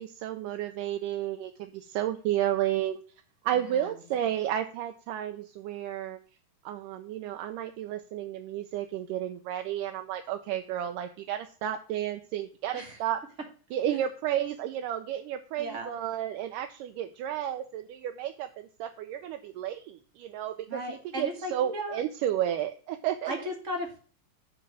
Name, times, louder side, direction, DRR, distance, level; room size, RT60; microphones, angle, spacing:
voice 1, 0.0-3.0 3.4-6.2 6.7-13.2 13.7-23.3, right 11 dB, 80° right, 6 dB, 2.2 m, -32 dB
voice 2, 3.5-4.0 12.7-13.0 13.9-14.0 15.6-15.9 20.7-22.0 23.3-24.0, equal, 45° right, 2 dB, 1.0 m, -36 dB
9.8 x 3.4 x 6.3 m, 0.41 s
omnidirectional pair, 3.8 m